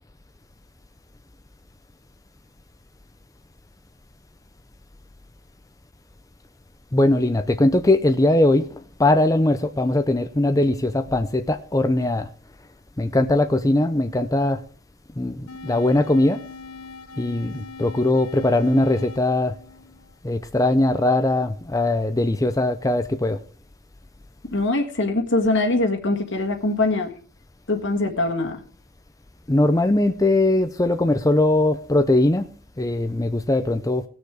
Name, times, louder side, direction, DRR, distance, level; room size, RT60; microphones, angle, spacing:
voice 1, 6.9-8.7 9.0-12.3 13.0-14.6 15.2-16.4 17.2-19.5 20.2-23.4 29.5-32.5 32.8-34.0, left 2 dB, 15° left, 0.5 m, -20 dB
sound 1, 15.5-20.5, left 4 dB, 75° left, 0.9 m, -41 dB
voice 2, 24.5-27.1 27.7-28.6, left 2 dB, 55° left, 1.6 m, -22 dB
18.5 x 6.7 x 4.8 m
head